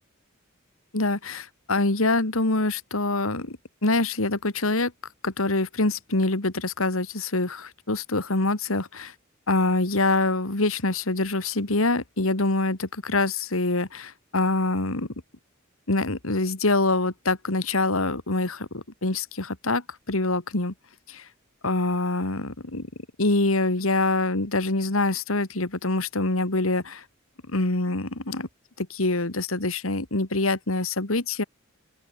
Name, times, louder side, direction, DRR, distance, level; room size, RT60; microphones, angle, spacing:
voice 1, 0.9-4.9 5.2-9.1 9.5-15.1 15.9-20.7 21.1-21.3 21.6-22.9 23.2-27.0 27.5-28.5 28.8-31.4, left 2 dB, 80° left, 2.5 m, -25 dB
open air
head